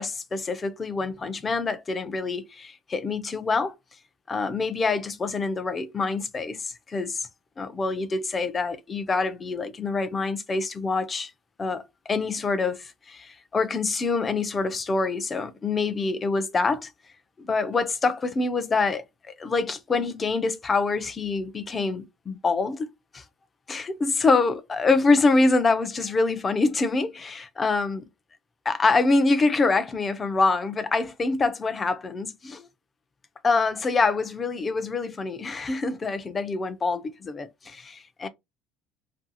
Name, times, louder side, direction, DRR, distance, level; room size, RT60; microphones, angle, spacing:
voice 1, 0.0-3.7 4.3-7.3 7.6-11.3 11.6-11.8 12.1-16.9 17.4-22.9 23.1-23.2 23.7-28.1 28.7-32.7 33.4-38.3, left 3 dB, 20° left, 0.3 m, -25 dB
2.7 x 2.5 x 2.6 m
cardioid pair, 165°, 0 cm